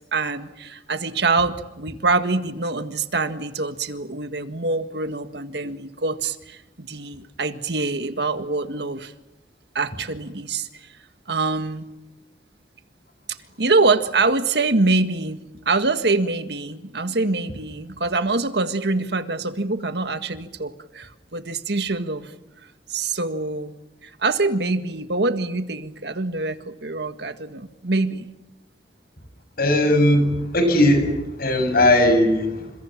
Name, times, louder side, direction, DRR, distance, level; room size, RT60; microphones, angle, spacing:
voice 1, 0.1-9.1 9.8-10.9 11.3-11.9 13.6-22.3 22.9-23.7 24.0-28.3, right 3 dB, 70° right, 9 dB, 1.8 m, -24 dB
voice 2, 29.6-32.7, left 1 dB, 60° left, 8 dB, 7.0 m, -18 dB
29.5 x 27.0 x 7.4 m, 0.96 s
head